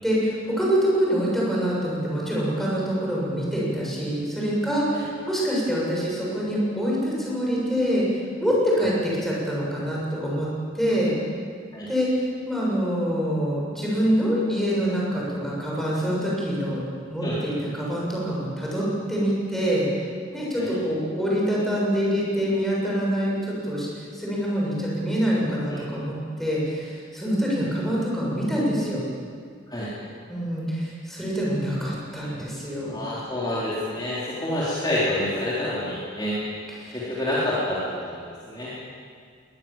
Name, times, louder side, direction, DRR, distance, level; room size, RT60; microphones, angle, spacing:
voice 1, 0.0-8.0 8.4-10.5 10.7-11.1 11.9-16.8 17.1-19.9 20.3-29.0 30.3-33.1 36.8-37.0, equal, ahead, -5 dB, 6.8 m, -25 dB
voice 2, 32.9-36.4 36.9-38.7, left 1 dB, 20° left, -8 dB, 3.8 m, -28 dB
21.0 x 19.5 x 7.4 m, 2.1 s
head